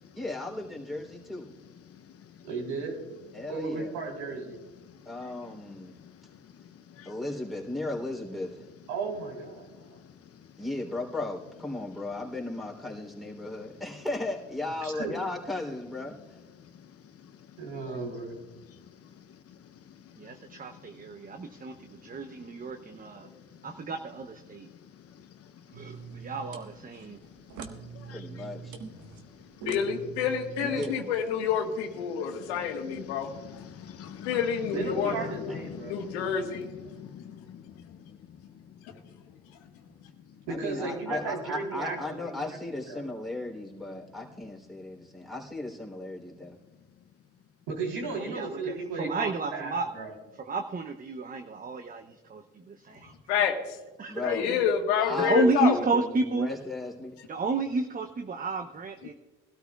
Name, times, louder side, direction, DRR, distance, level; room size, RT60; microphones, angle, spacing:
voice 1, 0.1-1.5 3.3-3.9 5.0-6.0 7.0-8.6 10.6-16.1 28.1-28.7 30.6-31.0 35.2-35.6 35.8-35.9 40.5-46.6 54.1-54.6 55.0-57.1, left 2 dB, ahead, 3.4 m, -36 dB
voice 2, 2.4-3.0 3.5-4.6 8.9-10.0 14.8-15.1 17.6-18.3 29.6-30.0 34.7-36.0 40.5-42.6 42.8-43.0 47.7-50.1, right 4 dB, 80° right, 3.8 m, -35 dB
voice 3, 20.2-23.3 23.6-24.7 25.7-27.2 48.3-48.6 49.0-49.9 50.5-52.0 52.3-53.1 54.0-54.4 55.2-56.5 57.3-59.1, right 3 dB, 25° right, 0.8 m, -31 dB
sound 1, 25.7-31.6, right 6 dB, 65° right, 1.5 m, -44 dB
voice 4, 28.0-28.4 32.2-32.5 32.9-34.4 35.7-36.3 36.9-37.6, left 8 dB, 45° left, 0.8 m, -44 dB
voice 5, 29.7-33.3 34.2-35.5 35.8-36.7 53.3-53.8 54.2-55.8, left 7 dB, 85° left, 1.5 m, -28 dB
21.0 x 13.0 x 2.4 m
supercardioid pair, 70°, 32 cm